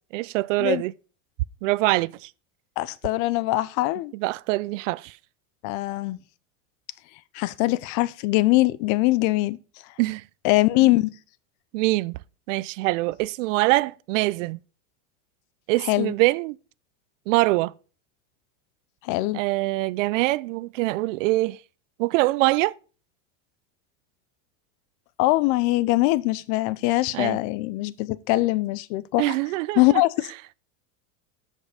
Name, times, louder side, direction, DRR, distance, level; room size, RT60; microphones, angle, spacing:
voice 1, 0.1-0.9 1.6-2.3 4.1-5.2 10.0-10.2 11.7-12.2 12.5-14.6 15.7-16.6 17.3-17.7 19.3-21.6 22.0-22.7 27.1-27.4 29.2-30.0, right 20 dB, 70° right, 0.5 m, -24 dB
voice 2, 2.8-4.1 5.6-6.2 7.3-9.6 10.4-11.1 15.8-16.1 19.0-19.4 25.2-29.3 29.8-30.3, left 19 dB, 50° left, 0.6 m, -22 dB
13.0 x 5.5 x 4.9 m
supercardioid pair, 135°, 39 cm